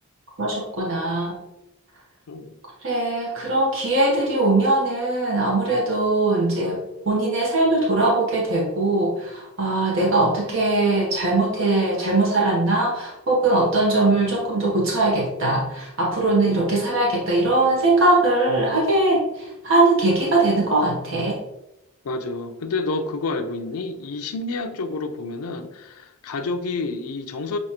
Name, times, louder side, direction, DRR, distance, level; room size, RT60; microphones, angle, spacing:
voice 1, 0.4-1.3 2.8-6.8 7.1-21.4, right 2 dB, 60° right, 0.9 m, -21 dB
voice 2, 22.0-27.6, left 3 dB, 75° left, 0.5 m, -29 dB
6.2 x 2.4 x 2.8 m
head